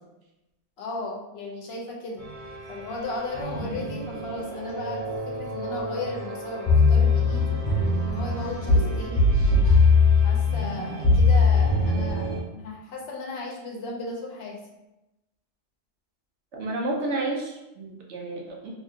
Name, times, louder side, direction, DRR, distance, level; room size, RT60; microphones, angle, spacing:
voice 1, 0.8-2.2 2.7-7.6 8.0-9.3 10.2-14.6, left 2 dB, 70° left, -1 dB, 0.8 m, -35 dB
sound 1, 2.2-12.4, left 3 dB, 25° left, 1.4 m, -22 dB
voice 2, 16.5-18.7, right 2 dB, 80° right, -1 dB, 1.0 m, -31 dB
2.8 x 2.6 x 2.4 m, 0.94 s
omnidirectional pair, 1.2 m